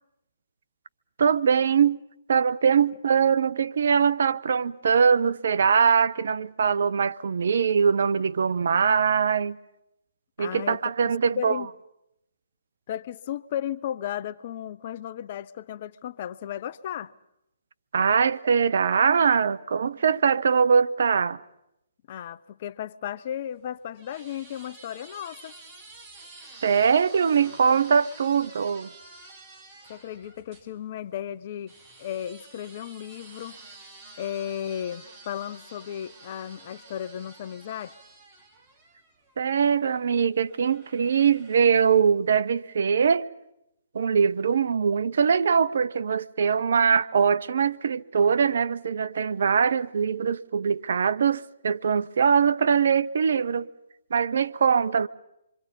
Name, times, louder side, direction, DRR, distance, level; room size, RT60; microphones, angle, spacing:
voice 1, 1.2-2.0 2.3-9.6 10.4-11.6 17.9-21.4 26.6-28.9 39.4-43.3 43.9-53.7 54.1-55.1, right 6 dB, 60° right, 0.8 m, -22 dB
voice 2, 10.4-11.7 12.9-17.1 22.1-25.6 29.9-31.7 32.0-33.6 34.2-37.9, left 10 dB, 45° left, 0.7 m, -35 dB
sound 1, 23.3-30.7 31.7-39.6 40.5-42.1, right 3 dB, 30° right, 4.3 m, -49 dB
27.5 x 24.5 x 5.4 m
figure-of-eight pair, 135°, 0 cm